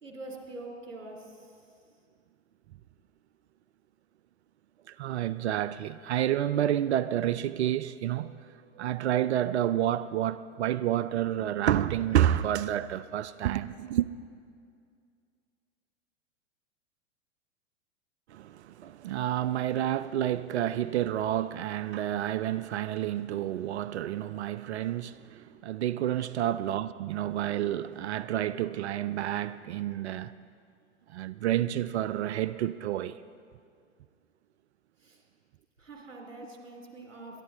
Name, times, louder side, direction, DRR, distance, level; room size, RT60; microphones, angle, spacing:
voice 1, 0.0-1.7 35.0-35.2 35.8-37.4, right 2 dB, 80° right, 2.7 m, -44 dB
voice 2, 4.9-14.1 18.3-30.3 31.1-33.2, right 12 dB, 60° right, 0.5 m, -29 dB
22.5 x 11.5 x 3.8 m
figure-of-eight pair, 95°, 37 cm